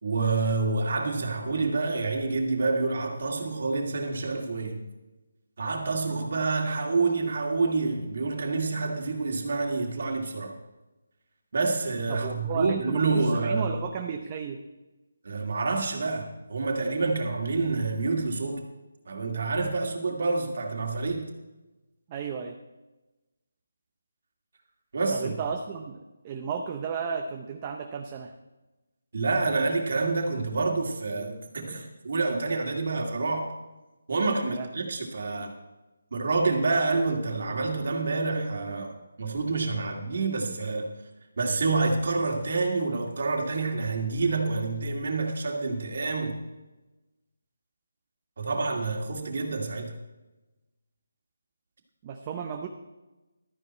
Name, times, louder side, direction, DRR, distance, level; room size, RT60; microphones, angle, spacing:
voice 1, 0.0-4.8 5.6-10.5 11.5-13.7 15.2-18.7 19.1-21.3 24.9-25.4 29.1-33.5 34.1-35.5 36.1-40.9 41.4-46.4 48.4-50.0, right 3 dB, 50° right, 1 dB, 2.2 m, -28 dB
voice 2, 12.1-14.6 22.1-22.6 25.1-28.3 34.5-34.9 52.0-52.7, right 6 dB, 20° right, 3 dB, 0.6 m, -34 dB
12.5 x 10.5 x 4.3 m, 1.1 s
hypercardioid pair, 175°, 0 cm